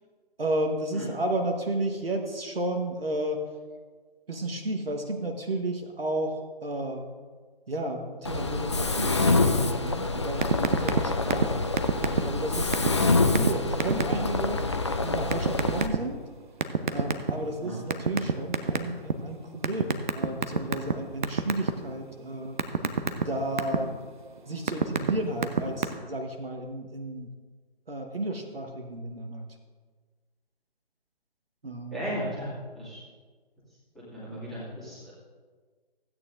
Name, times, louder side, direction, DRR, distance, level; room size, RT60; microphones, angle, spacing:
voice 1, 0.4-3.4 4.3-7.1 7.7-11.7 12.2-14.6 15.0-16.2 16.9-22.6 23.2-24.0 24.5-27.3 27.9-29.5 31.6-32.0, right 1 dB, 70° right, 3 dB, 1.4 m, -32 dB
Mechanisms, 8.3-15.9, left 3 dB, 30° left, 0.4 m, -26 dB
sound 1, 10.4-11.0 11.3-11.5 11.8-12.4 12.7-12.9 13.3-13.5 13.8-14.1 15.3-16.0 16.6-17.5 17.9-19.1 19.6-20.9 21.2-21.7 22.1-23.8 24.4-25.1 25.4-25.8, right 5 dB, 50° right, 0.8 m, -24 dB
voice 2, 31.9-33.0 34.1-35.2, equal, ahead, -11 dB, 2.1 m, -36 dB
15.5 x 9.0 x 2.6 m, 1.5 s
figure-of-eight pair, 145°, 30 cm